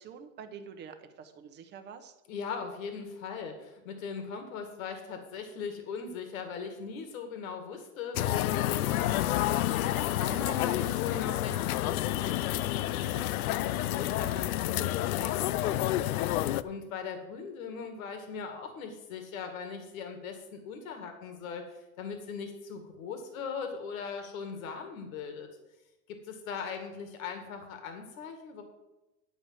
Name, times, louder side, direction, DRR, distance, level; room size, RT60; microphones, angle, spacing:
voice 1, 0.0-2.1, right 6 dB, 25° right, 8 dB, 0.9 m, -47 dB
voice 2, 2.3-16.1 16.6-25.5 26.1-28.6, left 5 dB, 70° left, 6 dB, 2.0 m, -40 dB
sound 1, 8.2-16.6, left 14 dB, 85° left, 0.6 m, -29 dB
10.5 x 4.9 x 7.5 m, 1.0 s
supercardioid pair, 145°, 42 cm